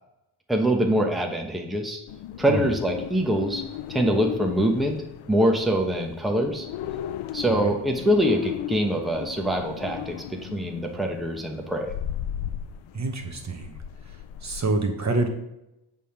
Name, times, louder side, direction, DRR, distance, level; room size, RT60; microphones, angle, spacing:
voice 1, 0.5-2.0 2.4-3.6 3.9-4.9 5.3-6.7 7.3-11.9, right 1 dB, ahead, 2 dB, 0.9 m, -24 dB
sound 1, 2.1-14.7, left 11 dB, 70° left, 0.6 m, -36 dB
voice 2, 7.5-7.8 12.9-13.7 14.4-15.3, right 3 dB, 35° right, 5 dB, 1.0 m, -27 dB
8.3 x 3.7 x 5.8 m, 0.88 s
cardioid pair, 100°, 49 cm